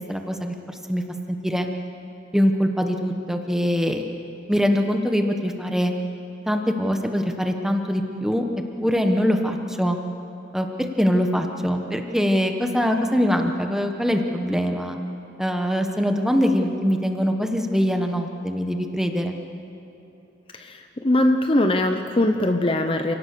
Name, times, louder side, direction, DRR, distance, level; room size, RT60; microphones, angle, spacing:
voice 1, 0.1-1.0 1.3-1.7 2.3-4.0 4.5-5.9 6.5-8.4 8.8-10.0 10.5-15.0 15.4-19.3, equal, 5° right, 4 dB, 1.3 m, -23 dB
voice 2, 20.5-23.1, left 1 dB, 30° left, 6 dB, 0.8 m, -21 dB
28.5 x 18.0 x 6.9 m, 2.9 s
head